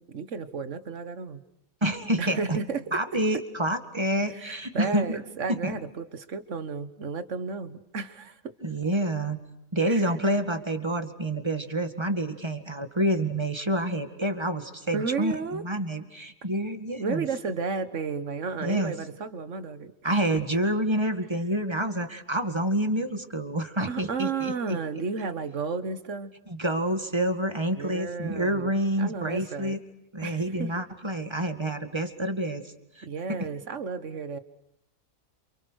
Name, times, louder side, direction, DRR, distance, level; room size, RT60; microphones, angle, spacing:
voice 1, 0.0-1.4 2.2-3.0 4.3-8.5 9.9-10.1 14.9-15.6 17.0-19.9 23.8-26.3 27.7-28.7 29.0-29.8 30.2-30.7 33.0-34.4, right 4 dB, 60° right, 12 dB, 1.8 m, -33 dB
voice 2, 1.8-2.6 2.9-5.2 5.5-5.7 8.6-9.4 9.7-17.3 18.6-18.9 20.0-24.8 26.5-29.8 30.1-32.6 33.0-33.4, right 1 dB, 20° right, 8 dB, 2.0 m, -28 dB
29.0 x 28.0 x 6.4 m, 0.83 s
omnidirectional pair, 1.4 m